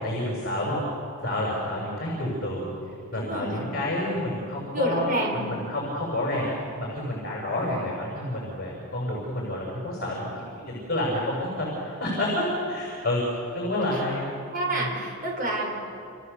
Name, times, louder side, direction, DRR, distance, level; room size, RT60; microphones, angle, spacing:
voice 1, 0.0-0.8 1.2-2.7 3.1-6.5 6.8-10.3 10.7-14.2 14.7-14.9, left 1 dB, 45° left, -3 dB, 6.3 m, -29 dB
voice 2, 3.1-3.6 4.7-5.7 14.5-15.7, right 1 dB, 40° right, -1 dB, 6.8 m, -28 dB
29.5 x 28.5 x 6.9 m, 2.6 s
head